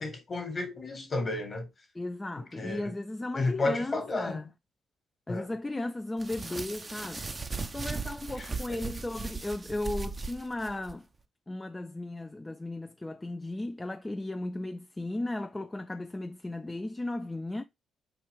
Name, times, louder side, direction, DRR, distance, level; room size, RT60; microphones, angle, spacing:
voice 1, 0.0-1.7 2.6-2.9 3.3-4.5 5.3-5.5 8.7-8.8, left 2 dB, 40° left, 1.3 m, -32 dB
voice 2, 1.9-4.5 5.3-7.3 7.7-11.1 11.5-17.6, left 2 dB, 20° left, 0.3 m, -36 dB
sound 1, 6.2-11.0, right 4 dB, 30° right, 0.5 m, -37 dB
4.5 x 2.5 x 3.5 m
hypercardioid pair, 45°, 0 cm